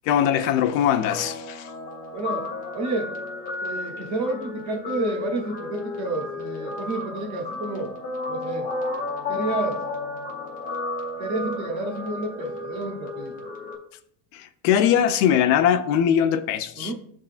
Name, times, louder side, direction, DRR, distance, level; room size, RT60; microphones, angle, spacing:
voice 1, 0.1-1.7 14.3-16.9, left 9 dB, 65° left, 0.6 m, -21 dB
Guitar, 1.0-13.8, left 2 dB, 20° left, 0.5 m, -33 dB
voice 2, 2.1-3.2 3.6-7.9 8.3-8.7 9.3-9.9 11.2-13.3 16.8-16.9, right 2 dB, 35° right, 0.8 m, -30 dB
10.5 x 3.6 x 2.4 m
cardioid pair, 165°, 49 cm